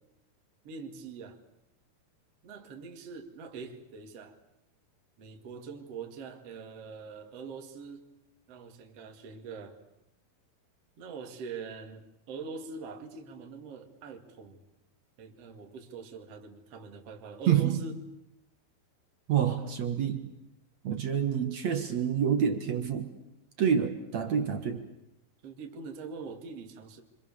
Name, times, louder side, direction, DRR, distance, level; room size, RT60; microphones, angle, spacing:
voice 1, 0.6-1.4 2.4-4.4 5.2-8.1 8.5-9.8 11.0-14.6 15.2-18.0 25.4-27.0, right 4 dB, 40° right, 4 dB, 2.9 m, -43 dB
voice 2, 17.5-17.8 19.3-20.3 20.8-23.1 23.6-24.8, right 8 dB, 55° right, 8 dB, 2.0 m, -27 dB
30.0 x 25.5 x 7.1 m, 0.84 s
omnidirectional pair, 5.2 m